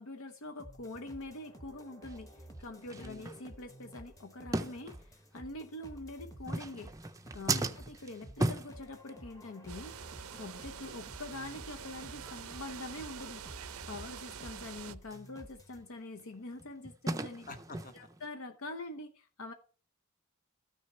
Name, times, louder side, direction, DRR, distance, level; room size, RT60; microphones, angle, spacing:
voice 1, 0.0-6.9 7.3-7.6 7.9-10.0 10.4-13.6 13.9-17.5 17.9-19.5, left 2 dB, 70° left, 0.8 m, -45 dB
sound 1, 0.6-15.8, right 1 dB, 15° left, 1.0 m, -53 dB
sound 2, 2.1-2.2 2.8-3.9 4.5-5.4 6.3-9.5 9.8-10.0 10.3-10.5 11.0-11.1 11.5-11.6 12.0-12.1 12.5-12.6 13.1-13.2 15.1-15.3 15.8-18.3, right 2 dB, 15° right, 0.5 m, -37 dB
sound 3, 9.7-15.0, right 8 dB, 80° right, 0.6 m, -46 dB
voice 2, 17.5-17.9, left 3 dB, 40° left, 1.3 m, -46 dB
13.5 x 6.3 x 4.3 m
head